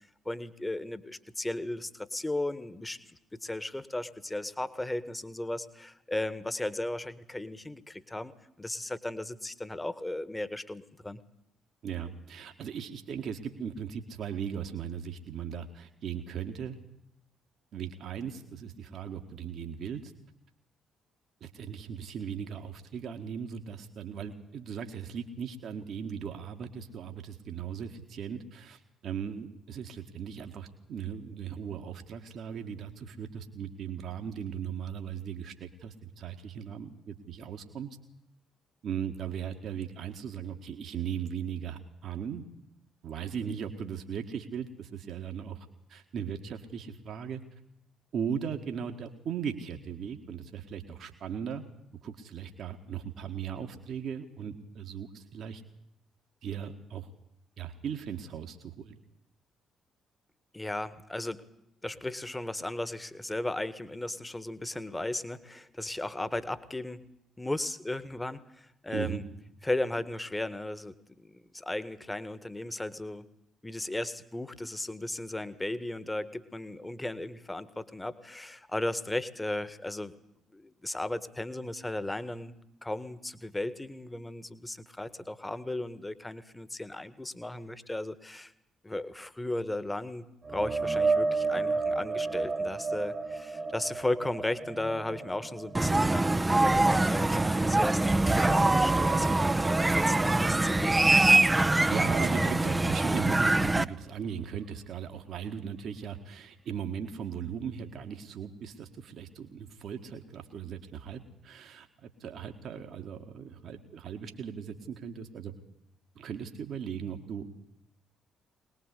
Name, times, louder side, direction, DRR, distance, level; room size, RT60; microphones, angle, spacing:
voice 1, 0.3-11.2 60.5-61.5 61.8-67.0 67.4-69.2 69.6-73.3 73.6-80.1 80.5-82.5 82.8-88.5 88.8-101.0, left 1 dB, 15° left, 14 dB, 1.8 m, -36 dB
voice 2, 11.8-16.8 17.7-20.1 21.4-38.0 38.8-42.4 43.0-47.4 48.1-51.6 52.0-55.6 56.4-57.1 57.6-59.0 68.9-69.2 101.9-115.6 116.2-117.5, right 7 dB, 55° right, 6 dB, 1.8 m, -38 dB
sound 1, 90.4-97.9 98.2-102.1 102.4-102.7 106.0-106.1, right 4 dB, 35° right, 1.4 m, -33 dB
sound 2, 95.7-103.8, right 2 dB, 15° right, 0.9 m, -24 dB
22.5 x 20.0 x 8.4 m, 0.80 s
figure-of-eight pair, 45°, 0 cm